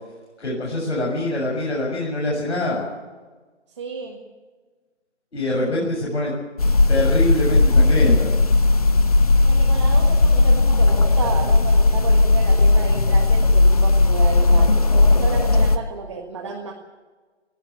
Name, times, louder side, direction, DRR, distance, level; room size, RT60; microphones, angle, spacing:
voice 1, 0.4-2.8 5.3-6.3 6.9-8.3, left 1 dB, 65° left, -3 dB, 7.2 m, -24 dB
voice 2, 3.8-4.2 9.5-16.7, right 5 dB, 25° right, 0 dB, 1.7 m, -32 dB
sound 1, 6.6-15.8, left 2 dB, 30° left, 0.9 m, -16 dB
18.5 x 17.5 x 8.4 m, 1.4 s
figure-of-eight pair, 165°, 36 cm